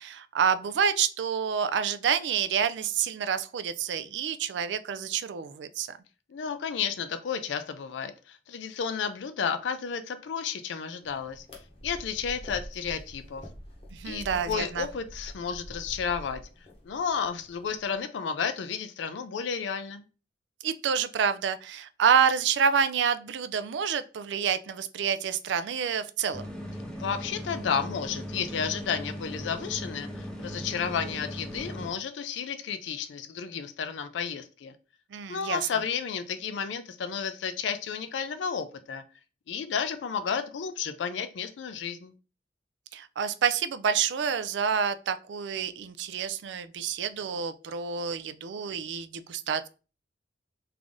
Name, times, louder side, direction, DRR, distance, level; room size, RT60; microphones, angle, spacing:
voice 1, 0.0-6.0 13.9-14.9 20.6-26.5 35.1-35.6 42.9-49.7, right 7 dB, 75° right, 11 dB, 0.3 m, -28 dB
voice 2, 6.3-11.5 11.8-13.4 14.0-16.4 16.8-20.0 27.0-34.7 35.3-39.0 39.5-42.1, left 6 dB, 80° left, 10 dB, 0.4 m, -32 dB
sound 1, 11.0-18.0, equal, 35° left, 0.8 m, -45 dB
sound 2, 26.3-31.9, equal, 5° left, 0.4 m, -38 dB
3.3 x 2.5 x 3.5 m, 0.35 s
head